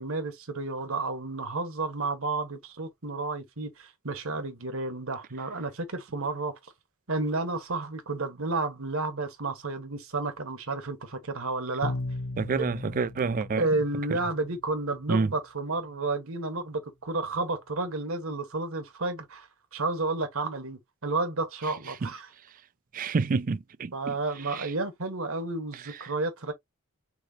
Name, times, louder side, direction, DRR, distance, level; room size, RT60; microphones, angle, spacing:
voice 1, 0.0-6.7 7.1-12.0 12.6-12.7 13.6-22.3 23.9-26.5, right 3 dB, 65° right, 1.4 m, -31 dB
Bowed string instrument, 11.8-14.6, left 2 dB, 55° left, 0.5 m, -36 dB
voice 2, 12.4-13.7 15.1-15.3 22.0-22.1 22.9-24.1 24.6-24.7, right 4 dB, 40° right, 0.4 m, -28 dB
6.1 x 2.9 x 2.8 m
head